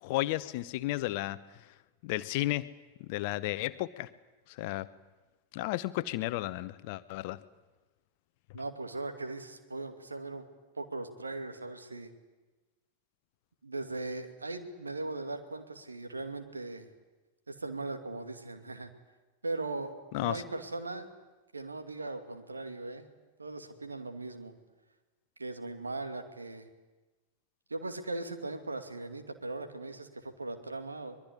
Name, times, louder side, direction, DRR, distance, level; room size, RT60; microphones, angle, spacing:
voice 1, 0.0-1.4 2.0-2.7 3.0-4.1 4.5-4.9 5.5-7.4 20.1-20.4, left 17 dB, 45° left, 15 dB, 0.8 m, -33 dB
voice 2, 8.5-10.4 10.8-12.1 13.6-16.9 17.5-18.9 19.4-21.1 21.5-23.1 23.4-24.5 25.4-26.7 27.7-31.2, right 2 dB, 80° right, 7 dB, 2.4 m, -39 dB
23.5 x 21.5 x 9.9 m, 1.2 s
figure-of-eight pair, 90°, 0 cm